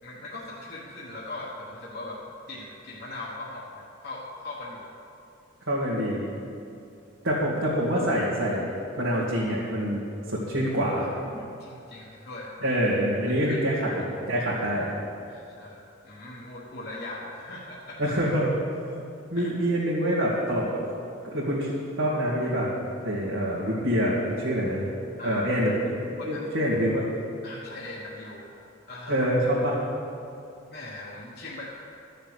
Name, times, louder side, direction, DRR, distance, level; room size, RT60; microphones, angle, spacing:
voice 1, 0.0-4.8 11.3-12.6 13.5-13.6 15.3-18.1 19.3-19.5 25.2-25.5 26.2-26.4 27.4-28.6 28.9-29.3 30.7-31.7, left 2 dB, 50° left, -5 dB, 1.3 m, -40 dB
voice 2, 5.7-6.3 7.2-8.7 9.0-10.0 10.3-11.1 12.6-13.7 14.3-14.9 18.0-18.5 18.9-19.0 19.3-20.6 21.2-21.7 22.0-22.7 23.0-24.9 25.2-27.1 29.1-29.8, equal, 80° right, -8 dB, 2.2 m, -26 dB
13.0 x 6.6 x 8.0 m, 2.6 s
head